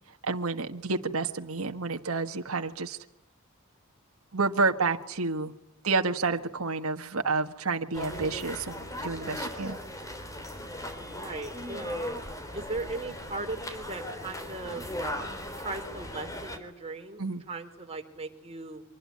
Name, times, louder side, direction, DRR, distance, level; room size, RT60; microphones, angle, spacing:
voice 1, 0.2-3.0 4.3-5.5 5.8-9.8 17.2-17.4, right 4 dB, 80° right, 5 dB, 1.6 m, -29 dB
sound 1, 7.9-16.6, left 1 dB, 15° left, 3.6 m, -38 dB
voice 2, 11.1-12.0 12.5-14.9 15.6-18.8, right 2 dB, 30° right, 4 dB, 4.2 m, -38 dB
26.0 x 21.0 x 9.8 m, 0.85 s
head